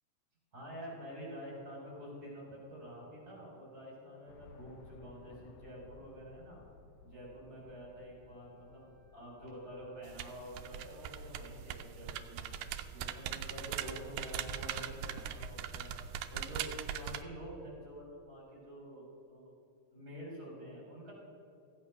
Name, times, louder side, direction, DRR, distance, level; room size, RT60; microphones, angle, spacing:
voice 1, 0.5-6.6 7.0-12.5 12.9-16.0 16.3-19.5 19.9-21.1, equal, 30° right, -3 dB, 4.3 m, -48 dB
sound 1, 4.3-10.5, left 5 dB, 75° left, 1.5 m, -59 dB
Wind instrument woodwind instrument, 8.1-11.9, right 2 dB, 50° left, 4.6 m, -73 dB
sound 2, 10.0-17.2, right 9 dB, 85° right, 2.0 m, -41 dB
15.0 x 8.7 x 5.9 m, 2.8 s
omnidirectional pair, 3.3 m